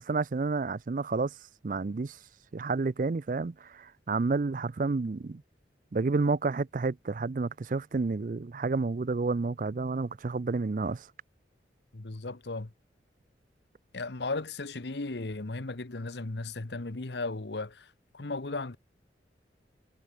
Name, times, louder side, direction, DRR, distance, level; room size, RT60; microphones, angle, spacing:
voice 1, 0.0-1.3 1.6-2.2 2.5-5.4 5.9-11.0, right 3 dB, 45° right, 0.4 m, -30 dB
voice 2, 11.9-12.7 13.9-17.9 18.1-18.8, left 3 dB, 70° left, 1.1 m, -36 dB
head